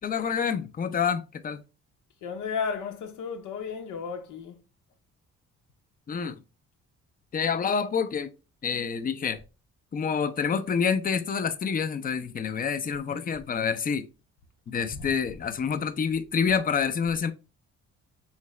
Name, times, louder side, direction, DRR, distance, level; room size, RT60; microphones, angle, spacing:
voice 1, 0.0-1.6 6.1-6.4 7.3-8.3 8.6-9.4 9.9-14.1 14.7-17.3, left 6 dB, 30° left, 0.5 m, -27 dB
voice 2, 2.2-4.6, left 6 dB, 85° left, 0.8 m, -33 dB
3.8 x 3.2 x 3.1 m
cardioid pair, 90°, 30 cm